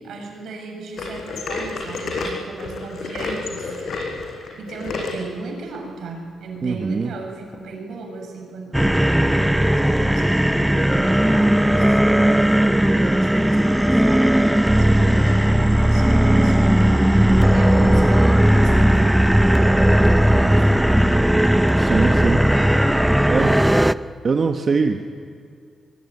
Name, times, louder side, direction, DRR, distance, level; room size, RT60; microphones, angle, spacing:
voice 1, 0.0-4.2 4.6-12.0 12.3-17.1 17.5-21.1, right 3 dB, 80° right, 2 dB, 7.3 m, -35 dB
sound 1, 1.0-5.2 5.7-5.9 6.6-6.7 7.5-7.6, left 3 dB, 65° left, 7.3 m, -30 dB
voice 2, 6.6-7.1 21.7-22.5 23.3-23.6 24.2-25.2, right 5 dB, 40° right, 5 dB, 1.2 m, -22 dB
sound 2, 8.7-23.9, right 1 dB, 5° right, 0.6 m, -16 dB
24.0 x 23.0 x 9.6 m, 2.3 s
cardioid pair, 115°, 0 cm